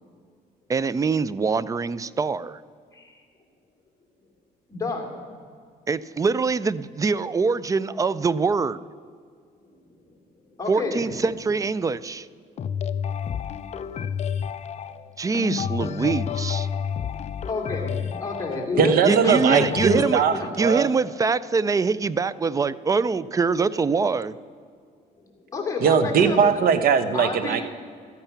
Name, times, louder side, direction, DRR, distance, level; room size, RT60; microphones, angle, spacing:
voice 1, 0.7-2.6 5.9-8.8 10.7-12.3 15.2-16.7 19.0-20.2 20.6-24.3, right 4 dB, 20° right, 18 dB, 0.3 m, -24 dB
voice 2, 4.7-5.0 10.6-11.1 17.5-19.8 20.3-20.5 25.5-26.6 27.1-27.6, left 3 dB, 20° left, 0 dB, 2.5 m, -29 dB
sound 1, 12.6-20.5, left 8 dB, 40° left, 0.5 m, -30 dB
voice 3, 18.8-20.9 25.8-27.6, right 6 dB, 60° right, 11 dB, 0.9 m, -20 dB
13.5 x 8.9 x 5.9 m, 2.1 s
cardioid pair, 110°, 17 cm